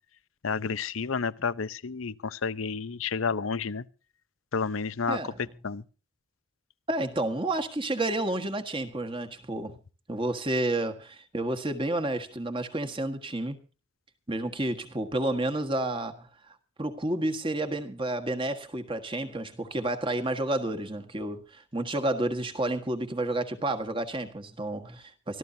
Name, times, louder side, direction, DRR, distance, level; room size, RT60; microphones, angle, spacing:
voice 1, 0.4-3.8 4.5-5.8, left 5 dB, 85° left, 0.7 m, -31 dB
voice 2, 5.1-5.4 6.9-9.8 10.1-13.6 14.3-25.4, right 1 dB, 25° right, 1.6 m, -30 dB
25.0 x 14.0 x 2.8 m
head